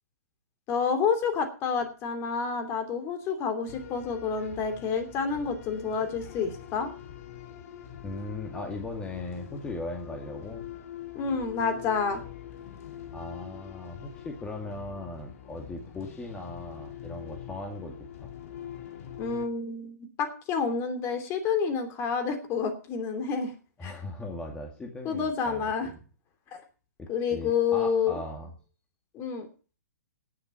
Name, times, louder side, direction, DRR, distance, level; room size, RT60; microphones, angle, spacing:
voice 1, 0.7-6.9 11.1-12.2 19.2-23.5 23.8-23.9 25.0-25.9 26.5-26.6 27.1-28.2 29.1-29.5, left 6 dB, 30° left, 7 dB, 2.9 m, -29 dB
sound 1, 3.7-19.5, left 10 dB, 55° left, 2.6 m, -43 dB
voice 2, 8.0-10.7 13.1-18.3 23.8-25.9 27.0-28.5, left 2 dB, 10° left, 2 dB, 2.2 m, -38 dB
17.5 x 7.6 x 5.6 m, 0.37 s
hypercardioid pair, 135°, 9 cm